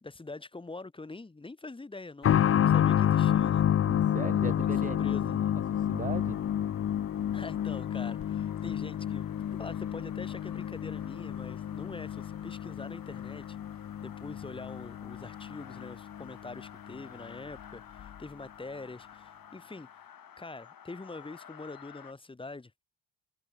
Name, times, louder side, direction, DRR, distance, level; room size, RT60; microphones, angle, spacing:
voice 1, 0.0-3.7 4.4-5.4 7.3-13.6 14.0-19.9 20.4-22.7, left 3 dB, 10° left, 1.1 m, -44 dB
sound 1, 2.2-16.7 16.9-17.0 18.0-18.1, left 10 dB, 35° left, 0.4 m, -29 dB
sound 2, 3.5-22.1, left 8 dB, 50° left, 3.7 m, -53 dB
voice 2, 3.9-5.6 5.9-6.4, right 6 dB, 20° right, 0.5 m, -39 dB
wide cardioid pair, 165°, 44 cm